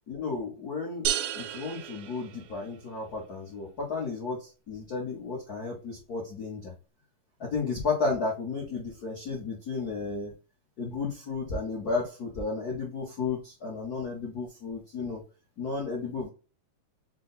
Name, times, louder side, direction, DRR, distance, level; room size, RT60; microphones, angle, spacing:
voice 1, 0.1-1.1 1.3-6.7 7.4-10.3 10.8-15.2 15.6-16.3, left 4 dB, 75° left, -2 dB, 0.8 m, -33 dB
sound 1, 1.1-2.9, right 10 dB, 80° right, 2.1 m, -33 dB
6.1 x 2.2 x 4.0 m, 0.33 s
omnidirectional pair, 3.6 m